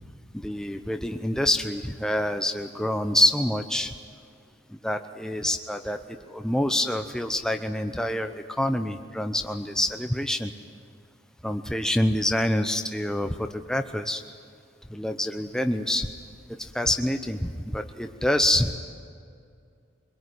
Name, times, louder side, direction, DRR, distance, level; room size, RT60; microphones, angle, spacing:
voice 1, 0.3-3.9 4.8-10.5 11.4-14.2 14.9-16.1 16.6-18.7, left 1 dB, 5° left, 6 dB, 0.8 m, -26 dB
24.0 x 22.5 x 9.7 m, 2.3 s
head